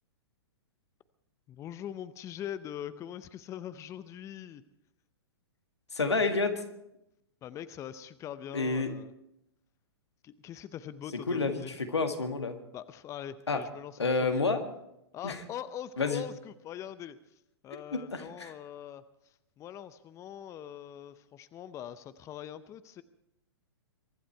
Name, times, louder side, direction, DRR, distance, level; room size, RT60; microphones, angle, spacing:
voice 1, 1.5-4.6 7.4-9.1 10.2-11.7 12.7-14.4 15.1-17.2 17.6-23.0, left 10 dB, 20° left, 14 dB, 0.6 m, -42 dB
voice 2, 5.9-6.6 8.5-8.9 11.3-12.6 13.5-13.6 14.0-14.6 15.2-15.4 16.0-16.2 17.9-18.5, left 3 dB, 90° left, 5 dB, 2.0 m, -29 dB
23.5 x 11.5 x 4.6 m, 0.83 s
hypercardioid pair, 120°, 14 cm